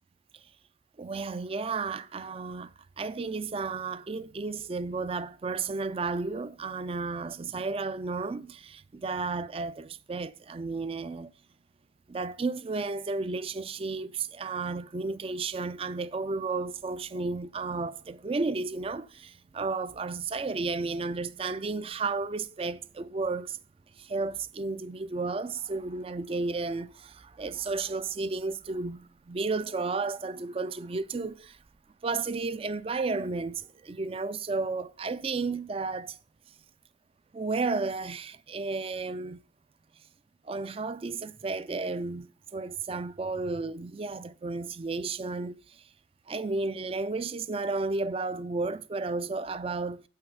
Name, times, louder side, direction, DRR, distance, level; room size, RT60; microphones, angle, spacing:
voice 1, 1.0-11.3 12.1-23.6 24.0-31.6 32.0-36.2 37.3-39.4 40.4-45.8 46.3-50.0, right 3 dB, 30° right, 0.4 m, -33 dB
7.8 x 5.7 x 5.4 m
head